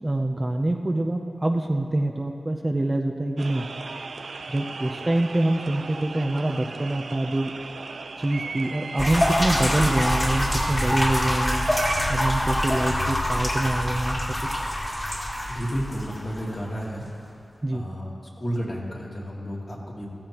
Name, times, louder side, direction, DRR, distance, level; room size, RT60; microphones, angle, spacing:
voice 1, 0.0-3.7 4.5-7.5 8.2-11.7 12.1-14.2 17.6-17.8, right 1 dB, 25° right, 3 dB, 0.7 m, -25 dB
sound 1, 3.4-12.3, right 4 dB, 75° right, 0.4 m, -37 dB
sound 2, 9.0-16.5, equal, 25° left, 2.2 m, -25 dB
voice 2, 15.5-17.0 17.7-20.1, equal, 40° left, -4 dB, 2.3 m, -32 dB
15.5 x 14.5 x 3.0 m, 2.8 s
wide cardioid pair, 90°, 0 cm